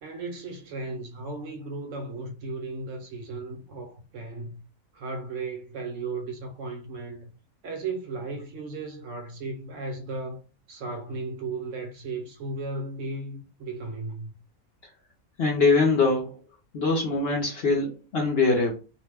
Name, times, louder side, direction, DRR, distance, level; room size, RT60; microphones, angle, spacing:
voice 1, 0.0-4.6 4.9-7.3 7.6-10.4 10.7-14.3, right 3 dB, 65° right, 0.9 m, -35 dB
voice 2, 15.4-16.4 16.7-18.7, left 3 dB, 55° left, 0.7 m, -23 dB
2.6 x 2.1 x 3.3 m
omnidirectional pair, 1.5 m